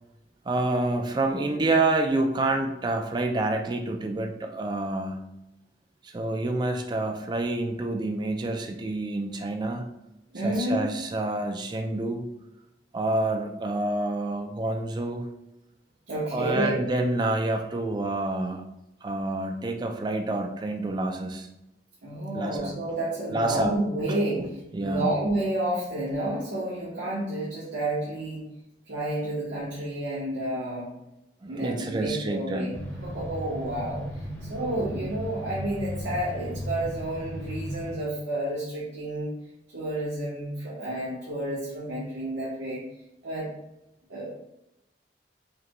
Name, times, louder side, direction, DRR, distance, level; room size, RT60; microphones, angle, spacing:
voice 1, 0.5-5.2 6.0-9.9 10.4-12.3 12.9-15.3 16.3-18.6 19.0-21.5 22.3-22.7 23.3-23.7 24.4-25.1 31.4-32.7, right 2 dB, 25° right, 4 dB, 0.3 m, -28 dB
voice 2, 10.3-10.8 16.1-16.8 22.0-24.4 24.8-28.4 28.9-30.9 31.5-32.7 33.0-34.0 34.5-39.3 39.7-42.8 43.2-43.5 44.1-44.3, right 1 dB, 80° right, -8 dB, 1.1 m, -30 dB
sound 1, 32.7-37.9, equal, 15° left, 0.8 m, -36 dB
4.9 x 2.2 x 2.9 m, 0.87 s
head